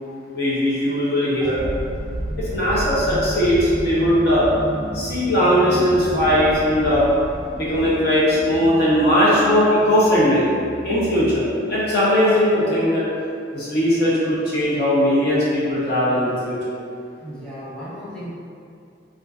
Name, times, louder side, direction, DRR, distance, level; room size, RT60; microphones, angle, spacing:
voice 1, 0.3-1.6 2.4-4.5 4.9-7.1 7.5-10.4 10.8-13.0 13.5-16.7, equal, 60° left, -8 dB, 0.8 m, -19 dB
sound 1, 1.6-8.4, equal, 35° right, 0.4 m, -31 dB
sound 2, 5.5-11.4, left 1 dB, 30° left, 0.5 m, -37 dB
voice 2, 17.2-18.3, equal, 5° left, -11 dB, 0.8 m, -35 dB
3.5 x 2.5 x 2.5 m, 2.4 s
head